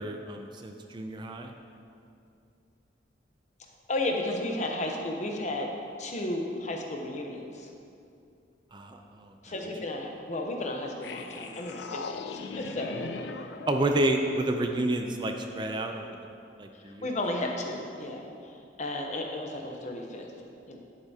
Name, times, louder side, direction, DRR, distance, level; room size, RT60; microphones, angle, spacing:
voice 1, 0.0-1.5 8.7-9.3 13.7-16.1 16.6-17.1, right 1 dB, 25° right, 4 dB, 0.4 m, -30 dB
voice 2, 3.9-5.7 6.0-7.7 9.4-12.9 16.8-18.5 18.8-20.3 20.7-20.8, left 1 dB, 40° left, 2 dB, 0.8 m, -33 dB
sound 1, 11.0-15.3, left 4 dB, 60° left, 0.4 m, -40 dB
10.5 x 8.0 x 2.8 m, 2.5 s
head